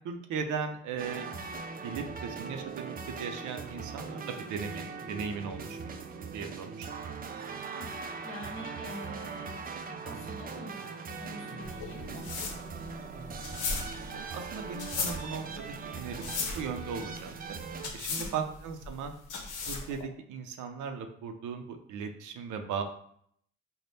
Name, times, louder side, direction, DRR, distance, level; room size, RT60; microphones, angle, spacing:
voice 1, 0.0-1.3 1.8-6.0 6.3-6.9 14.3-15.6 15.9-17.3 17.9-19.1 19.7-22.8, right 6 dB, 80° right, 6 dB, 0.6 m, -37 dB
sound 1, 1.0-17.9, right 5 dB, 30° right, 0.4 m, -40 dB
voice 2, 8.2-9.6 10.0-12.4 18.2-18.5, left 1 dB, 45° left, 1 dB, 1.0 m, -45 dB
sound 2, 11.6-20.0, left 4 dB, 80° left, 0.8 m, -37 dB
3.4 x 2.1 x 3.9 m, 0.65 s
cardioid pair, 90°, 30 cm